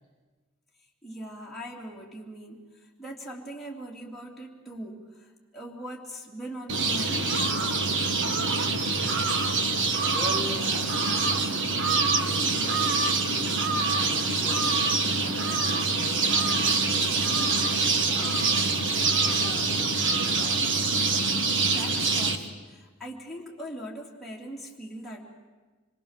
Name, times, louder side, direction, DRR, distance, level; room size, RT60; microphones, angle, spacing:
voice 1, 1.0-2.7 3.0-5.3 5.5-7.4 21.6-25.2, right 1 dB, ahead, -5 dB, 2.8 m, -40 dB
sound 1, 6.7-22.4, right 3 dB, 60° right, 1.6 m, -25 dB
voice 2, 10.1-12.9 13.3-14.6 15.0-17.7 18.1-18.6 19.2-20.6, equal, 40° right, -2 dB, 5.4 m, -42 dB
26.5 x 22.0 x 7.4 m, 1.3 s
head